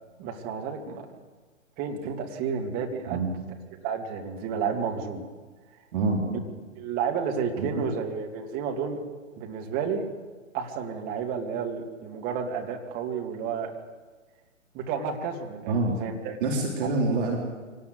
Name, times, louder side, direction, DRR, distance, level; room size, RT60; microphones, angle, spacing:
voice 1, 0.2-1.1 1.8-3.2 3.8-5.3 6.8-9.0 9.4-10.1 10.5-13.8 14.7-16.4, right 6 dB, 20° right, 2 dB, 2.4 m, -31 dB
voice 2, 5.9-6.2 7.6-7.7 15.7-16.0 16.4-17.4, right 3 dB, 40° right, -1 dB, 4.2 m, -26 dB
24.0 x 18.5 x 8.2 m, 1.4 s
figure-of-eight pair, 125°, 39 cm